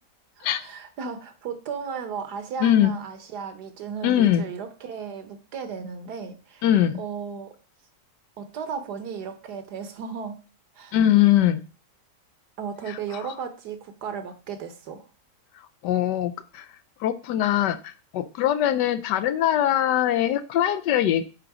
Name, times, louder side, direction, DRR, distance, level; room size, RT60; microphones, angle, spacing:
voice 1, 0.4-6.6 7.0-7.5 8.4-10.4 10.7-11.0 12.6-15.1, right 6 dB, 70° right, 9 dB, 1.5 m, -35 dB
voice 2, 2.6-2.9 4.0-4.4 6.6-7.0 10.9-11.6 12.9-13.0 15.8-16.7 17.0-21.2, left 11 dB, 80° left, 10 dB, 1.2 m, -22 dB
9.0 x 3.8 x 4.8 m, 0.35 s
omnidirectional pair, 1.8 m